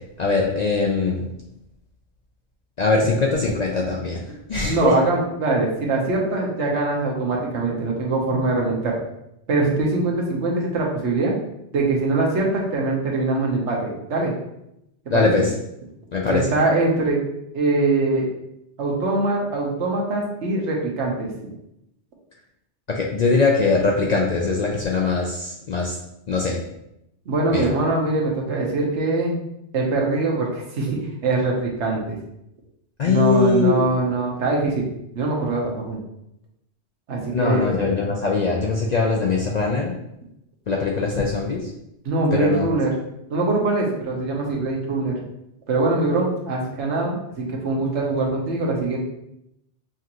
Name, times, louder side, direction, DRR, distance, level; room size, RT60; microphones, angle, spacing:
voice 1, 0.2-1.3 2.8-4.2 4.5-4.9 15.1-15.5 16.1-16.5 22.9-26.0 26.3-26.6 27.5-27.7 33.0-33.8 37.3-40.0 40.7-41.7 42.3-42.7, left 4 dB, 55° left, -1 dB, 0.4 m, -21 dB
voice 2, 4.6-8.9 9.5-11.3 11.7-14.3 15.1-15.4 16.3-17.2 17.5-18.3 18.8-21.3 27.3-29.3 29.7-32.2 33.1-34.9 35.1-36.0 37.1-37.7 42.0-42.9 43.3-45.2 45.7-49.0, right 2 dB, 80° right, -1 dB, 1.2 m, -22 dB
5.6 x 2.5 x 2.9 m, 0.82 s
omnidirectional pair, 1.2 m